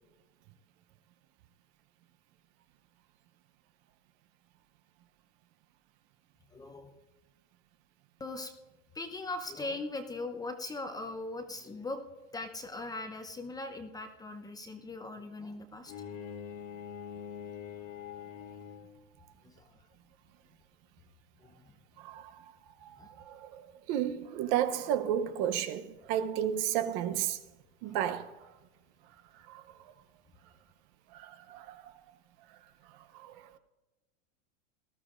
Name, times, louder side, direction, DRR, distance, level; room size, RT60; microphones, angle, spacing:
voice 1, 6.5-6.9 8.2-8.5 8.9-12.0 12.3-15.9 19.4-19.7 21.4-21.6 23.0-23.1 27.8-28.0, left 2 dB, 10° left, 0.6 m, -40 dB
Bowed string instrument, 15.9-19.1, left 8 dB, 75° left, 1.9 m, -44 dB
voice 2, 22.0-22.3 22.8-22.9 23.2-27.4 27.8-28.3 29.5-29.6 31.1-31.9 33.1-33.4, right 10 dB, 45° right, 0.8 m, -32 dB
19.0 x 13.0 x 2.5 m
supercardioid pair, 140°, 37 cm